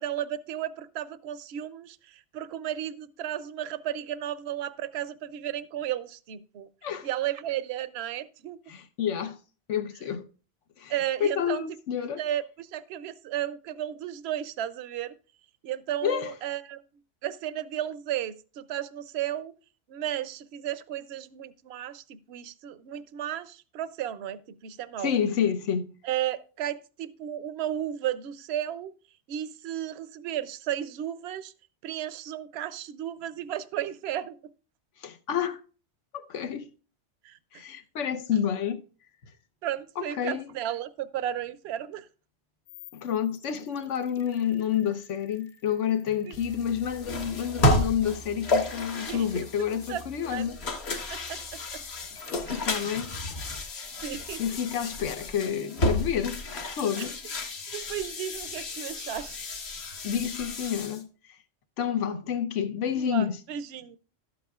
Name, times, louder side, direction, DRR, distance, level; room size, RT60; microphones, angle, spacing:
voice 1, 0.0-6.7 7.0-8.6 10.9-11.6 12.2-15.2 15.6-16.8 17.2-19.5 19.9-25.1 26.0-28.9 29.3-31.5 31.8-34.4 37.2-37.6 39.6-42.1 46.3-46.4 49.1-49.2 49.6-50.0 50.3-50.5 51.1-51.8 52.4-52.6 54.0-54.4 57.0-57.1 57.7-59.4 62.9-64.0, right 11 dB, 65° right, 0.8 m, -34 dB
voice 2, 8.7-9.4 9.7-10.3 10.8-10.9 11.2-12.2 16.0-16.3 25.0-25.9 35.0-35.6 36.1-36.7 37.5-38.8 40.0-40.5 42.9-50.6 52.5-53.1 54.4-57.2 60.0-61.1 61.8-63.4, left 8 dB, 85° left, 1.2 m, -29 dB
sound 1, 42.7-47.7 52.1-53.6, left 3 dB, 45° left, 1.1 m, -48 dB
sound 2, 46.3-61.0, left 1 dB, 60° left, 1.3 m, -32 dB
12.5 x 8.4 x 2.3 m
omnidirectional pair, 1.2 m